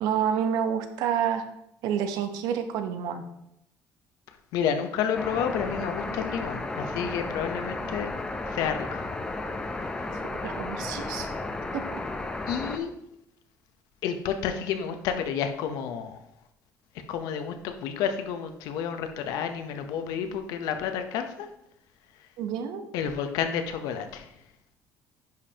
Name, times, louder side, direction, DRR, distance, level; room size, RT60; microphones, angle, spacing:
voice 1, 0.0-1.4 1.8-3.2 10.4-11.3 11.7-12.0 22.4-22.8, right 8 dB, 80° right, 8 dB, 0.8 m, -28 dB
voice 2, 4.5-8.1 8.5-9.1 10.0-10.1 12.5-12.9 14.0-16.2 17.1-21.5 22.9-24.3, left 7 dB, 75° left, 7 dB, 0.8 m, -30 dB
sound 1, 5.1-12.8, left 2 dB, 10° left, 0.5 m, -33 dB
10.5 x 5.2 x 2.9 m, 0.79 s
cardioid pair, 180°, 7 cm